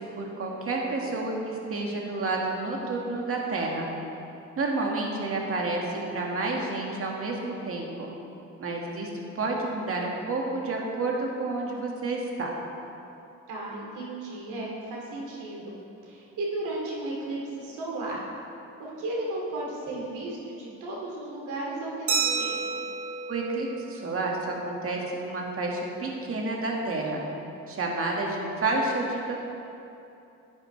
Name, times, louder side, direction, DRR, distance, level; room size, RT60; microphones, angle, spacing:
voice 1, 0.0-3.9 4.6-8.1 8.6-9.1 9.4-12.5 23.3-27.2 27.7-29.3, right 2 dB, 50° right, -1 dB, 1.9 m, -30 dB
voice 2, 13.5-15.8 16.0-18.2 18.8-22.8, right 2 dB, 85° right, -4 dB, 2.5 m, -34 dB
Glass, 22.1-24.5, right 5 dB, 65° right, 2.6 m, -31 dB
12.0 x 9.3 x 3.3 m, 2.8 s
cardioid pair, 90°, 30 cm